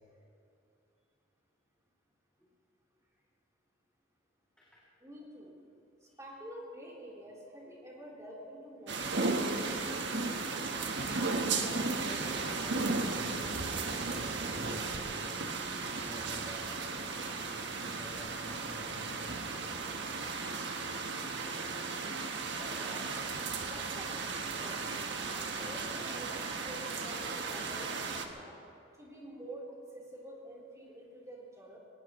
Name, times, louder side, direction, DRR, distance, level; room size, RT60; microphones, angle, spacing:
voice 1, 5.0-5.5 6.0-9.9 22.6-23.2 23.6-24.8 25.3-28.6 29.0-29.7 29.9-31.8, right 1 dB, 15° right, -5 dB, 3.9 m, -48 dB
sound 1, 8.9-28.3, right 3 dB, 65° right, 1.3 m, -35 dB
voice 2, 11.8-15.4 15.8-16.7 17.4-19.4, equal, 5° left, -8 dB, 2.8 m, -51 dB
23.0 x 19.0 x 3.2 m, 2.6 s
head